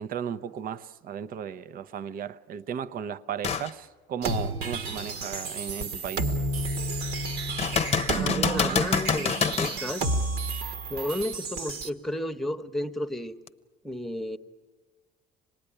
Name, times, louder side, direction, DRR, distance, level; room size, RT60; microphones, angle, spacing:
voice 1, 0.0-6.4, right 8 dB, 60° right, 13 dB, 0.7 m, -35 dB
sound 1, 3.4-3.7 4.3-4.4 7.6-9.8 13.5-13.6, left 6 dB, 35° left, 0.7 m, -26 dB
sound 2, 4.2-11.9, right 3 dB, 80° right, 1.6 m, -31 dB
voice 2, 8.2-10.1 10.9-13.3 13.8-14.4, left 1 dB, ahead, 7 dB, 1.0 m, -32 dB
25.5 x 19.5 x 10.0 m, 1.4 s
cardioid pair, 110°, 17 cm